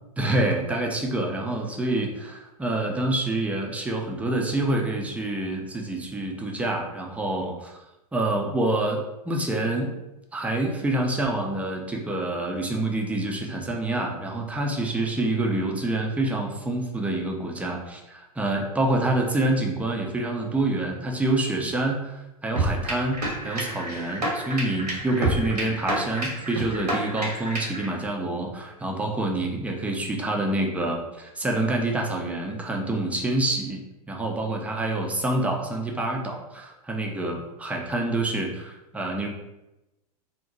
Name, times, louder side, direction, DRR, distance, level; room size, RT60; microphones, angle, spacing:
voice 1, 0.2-7.7 8.1-9.9 10.3-33.8 34.1-39.3, right 2 dB, 5° right, 1 dB, 0.4 m, -27 dB
sound 1, 22.6-27.9, right 1 dB, 85° right, 1.0 m, -29 dB
2.7 x 2.1 x 3.8 m, 0.97 s
figure-of-eight pair, 95°, 20 cm